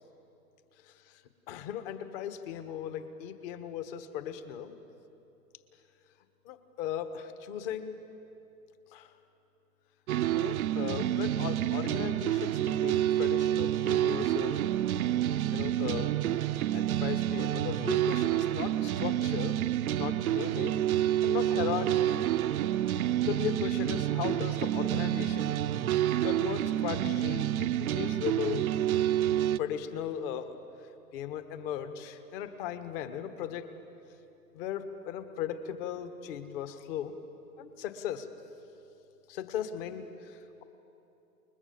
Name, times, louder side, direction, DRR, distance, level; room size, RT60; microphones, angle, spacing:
voice 1, 0.8-1.2 1.5-4.8 6.4-8.0 8.9-9.1 10.3-14.6 15.5-16.1 16.7-19.6 19.9-20.8 21.2-22.1 23.3-25.6 26.2-28.7 29.5-30.5 31.1-33.7 34.5-37.1 37.6-38.3 39.3-40.6, left 9 dB, 35° left, 10 dB, 1.5 m, -37 dB
sound 1, 10.1-29.6, right 12 dB, 60° right, 0.7 m, -28 dB
29.0 x 21.5 x 7.1 m, 2.9 s
hypercardioid pair, 130°, 50 cm